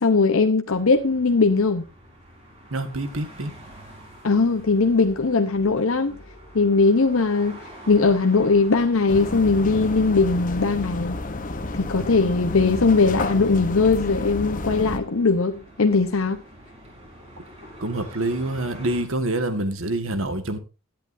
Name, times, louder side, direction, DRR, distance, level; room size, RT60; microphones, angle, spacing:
voice 1, 0.0-1.8 4.2-6.2 6.5-11.2 11.8-16.4, left 4 dB, 75° left, 0.8 m, -20 dB
sound 1, 0.6-19.0, equal, 30° right, 4.6 m, -46 dB
voice 2, 2.7-3.5 17.8-20.6, right 2 dB, 70° right, 1.6 m, -26 dB
sound 2, 9.1-15.0, left 2 dB, 40° left, 1.0 m, -30 dB
16.5 x 10.5 x 2.6 m
head